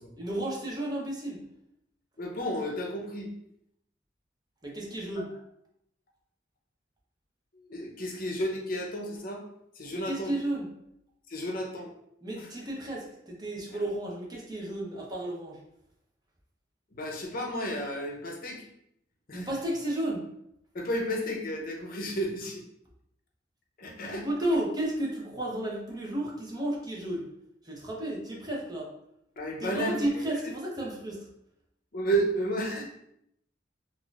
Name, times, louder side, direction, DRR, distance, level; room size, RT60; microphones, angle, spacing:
voice 1, 0.2-1.4 4.6-5.3 9.9-10.7 12.2-15.6 19.3-20.3 24.2-27.3 27.6-28.9 29.6-31.3, right 1 dB, 20° right, -3 dB, 0.8 m, -32 dB
voice 2, 2.2-3.3 7.5-9.4 9.8-10.3 11.3-11.9 16.9-18.6 19.3-19.4 20.7-22.6 23.8-24.3 29.4-30.0 31.9-32.8, right 1 dB, 50° left, 0 dB, 0.7 m, -32 dB
4.1 x 2.6 x 2.4 m, 0.75 s
head